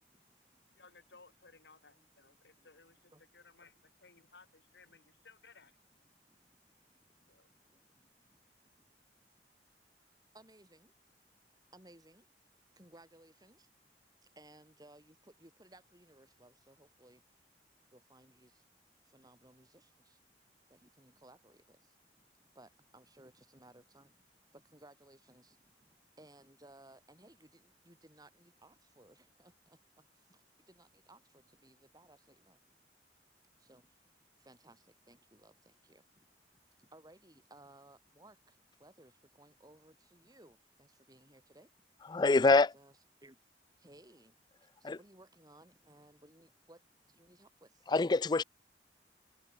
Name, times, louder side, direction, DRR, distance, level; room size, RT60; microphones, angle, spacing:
voice 1, 0.8-5.8 7.3-7.5, left 4 dB, 75° left, 3.5 m, -61 dB
voice 2, 10.3-10.9 11.7-12.2 12.8-13.6 14.4-15.2 15.4-17.2 17.9-18.5 19.1-19.9 20.7-21.6 22.6-24.1 24.7-25.6 26.2-29.5 30.7-31.2 31.6-32.6 33.7-33.8 34.5-34.8 35.1-35.5 35.9-36.0 36.9-38.4 38.8-39.1 39.4-41.7 42.3-42.9 43.2-43.4 43.8-44.3 44.9-46.8 47.2-47.7, right 1 dB, 20° right, 7.0 m, -60 dB
voice 3, 42.1-42.7 44.8-45.0 47.9-48.4, left 3 dB, 25° left, 0.4 m, -25 dB
head